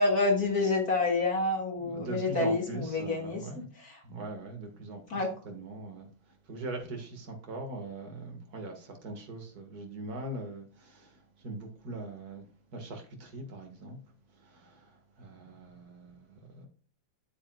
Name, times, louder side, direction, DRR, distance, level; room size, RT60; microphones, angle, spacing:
voice 1, 0.0-4.0 5.1-5.3, left 3 dB, 35° left, 1.6 m, -28 dB
voice 2, 1.8-3.7 4.0-6.1 6.5-12.4 12.7-14.0 14.4-14.9 15.2-16.7, right 2 dB, 55° right, 1.0 m, -41 dB
9.0 x 8.6 x 2.3 m
omnidirectional pair, 4.2 m